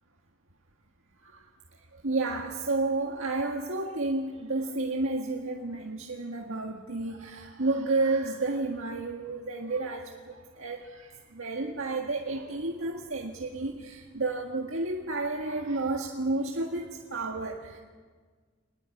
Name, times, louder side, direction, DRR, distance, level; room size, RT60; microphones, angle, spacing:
voice 1, 2.0-11.1 11.3-17.8, right 2 dB, 80° right, 1 dB, 1.8 m, -31 dB
24.0 x 20.0 x 8.5 m, 1.5 s
head